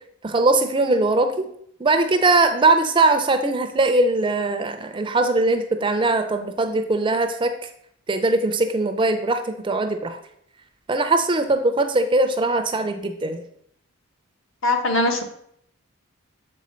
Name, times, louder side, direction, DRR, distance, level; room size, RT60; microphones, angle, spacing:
voice 1, 0.2-1.5 1.8-7.5 8.1-10.2 10.9-13.4, right 2 dB, 20° right, 8 dB, 0.4 m, -20 dB
voice 2, 14.6-15.2, left 2 dB, 60° left, 4 dB, 0.9 m, -21 dB
7.2 x 4.4 x 4.3 m, 0.71 s
head